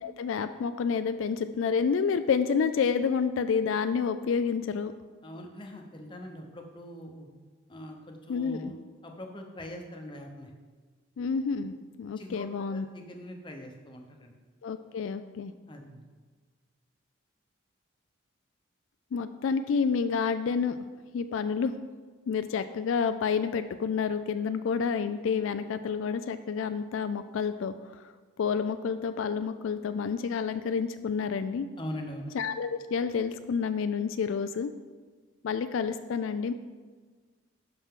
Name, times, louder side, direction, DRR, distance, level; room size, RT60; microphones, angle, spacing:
voice 1, 0.0-4.9 8.3-8.7 11.2-12.9 14.6-15.5 19.1-20.8 21.1-21.7 22.3-28.0 28.4-31.7 32.3-34.7 35.4-36.5, left 6 dB, 75° left, 10 dB, 0.3 m, -29 dB
voice 2, 5.2-7.3 7.7-8.7 9.0-10.5 12.2-14.3 15.7-16.0 31.8-32.3, equal, 25° left, 2 dB, 0.8 m, -42 dB
11.5 x 5.8 x 3.7 m, 1.4 s
head